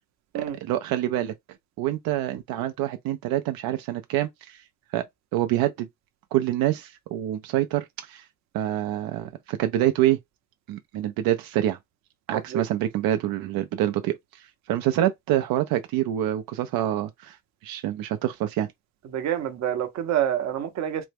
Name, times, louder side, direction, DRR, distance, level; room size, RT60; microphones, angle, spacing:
voice 1, 0.3-1.3 1.8-4.6 4.9-5.0 5.3-5.9 6.3-8.2 8.5-10.2 10.7-11.8 12.3-14.4 14.7-17.4 17.6-18.7, right 13 dB, 85° right, 0.5 m, -26 dB
voice 2, 12.3-12.6 19.1-21.0, right 10 dB, 50° right, 0.7 m, -27 dB
3.4 x 2.1 x 3.3 m
cardioid pair, 170°, 35 cm